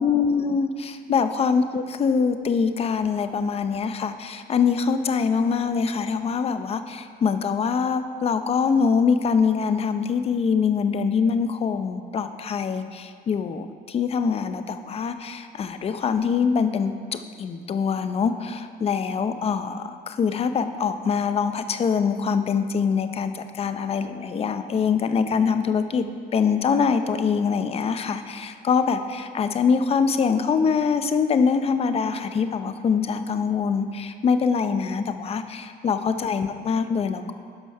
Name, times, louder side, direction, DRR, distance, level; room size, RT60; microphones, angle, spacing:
voice 1, 0.0-26.1 26.3-37.3, left 6 dB, 35° left, 10 dB, 0.6 m, -24 dB
12.0 x 5.4 x 5.5 m, 2.1 s
cardioid pair, 110°, 17 cm